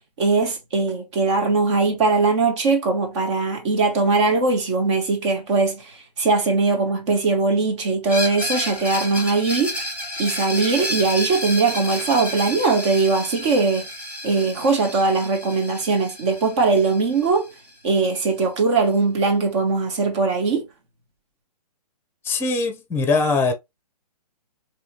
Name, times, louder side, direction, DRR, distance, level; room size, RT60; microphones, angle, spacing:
voice 1, 0.2-9.7 10.2-13.8 14.2-17.5 17.8-20.7, right 3 dB, 45° right, 1.7 m, -20 dB
Screech, 8.1-17.7, equal, 5° right, 1.5 m, -31 dB
voice 2, 22.2-23.5, left 3 dB, 10° left, 0.9 m, -21 dB
4.7 x 3.3 x 3.0 m
figure-of-eight pair, 135°, 21 cm